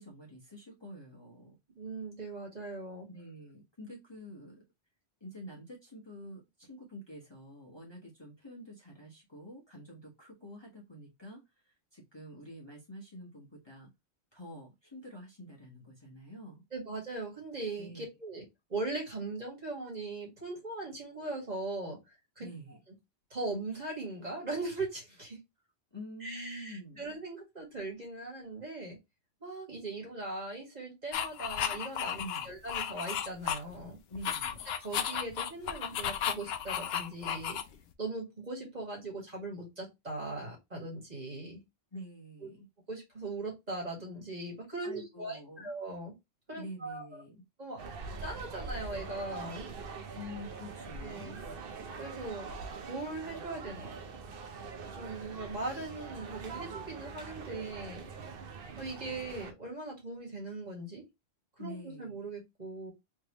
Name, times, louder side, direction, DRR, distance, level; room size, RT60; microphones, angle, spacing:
voice 1, 0.0-1.6 3.1-4.6 5.2-13.9 14.3-16.6 17.8-18.1 22.4-22.8 25.9-27.0 32.2-32.5 34.1-34.6 41.9-42.7 44.8-45.7 46.5-47.3 50.1-51.4 61.6-62.2, equal, 25° left, 1.3 m, -47 dB
voice 2, 1.8-3.1 16.7-22.0 22.4-22.5 23.3-25.4 26.2-29.0 29.4-34.0 34.8-37.6 38.0-41.6 42.4-42.5 42.9-46.1 46.5-47.2 47.6-47.8 48.2-49.7 51.0-51.4 52.0-52.5 52.9-53.9 54.9-58.1 58.8-61.0 61.6-62.9, right 2 dB, 35° right, 1.9 m, -39 dB
sound 1, 31.1-33.9 34.2-37.9, left 9 dB, 70° left, 0.8 m, -34 dB
sound 2, 47.8-59.5, right 4 dB, 60° right, 0.8 m, -43 dB
3.4 x 3.3 x 2.9 m
omnidirectional pair, 1.2 m